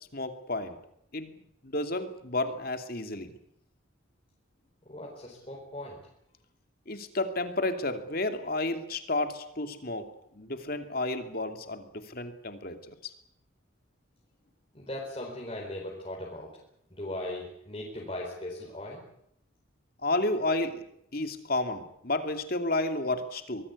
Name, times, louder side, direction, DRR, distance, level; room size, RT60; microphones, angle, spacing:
voice 1, 0.1-0.8 1.1-1.3 1.6-3.4 6.9-10.1 10.3-13.1 20.0-20.8 21.1-23.7, left 2 dB, 45° left, 7 dB, 2.6 m, -31 dB
voice 2, 4.8-6.0 14.7-16.5 16.9-19.0, left 1 dB, 25° left, -4 dB, 4.6 m, -38 dB
24.5 x 19.5 x 8.3 m, 0.75 s
head